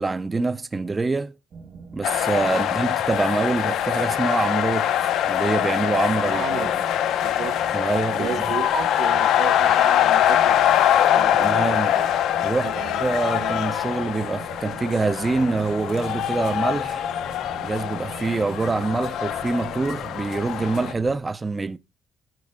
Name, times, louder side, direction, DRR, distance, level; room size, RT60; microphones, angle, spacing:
voice 1, 0.0-1.3 1.9-6.7 7.7-8.4 11.3-11.9 12.4-12.7 13.0-17.0 17.6-21.8, right 3 dB, 25° right, 0.5 m, -25 dB
sound 1, 1.5-21.2, right 4 dB, 50° right, 1.5 m, -42 dB
sound 2, 2.0-20.9, left 11 dB, 80° left, 0.7 m, -23 dB
voice 2, 6.2-6.7 7.2-7.6 7.9-10.6 11.1-12.0 12.6-13.0 13.4-13.5, right 8 dB, 80° right, 1.0 m, -33 dB
10.5 x 4.6 x 3.6 m
cardioid pair, 90°, 0 cm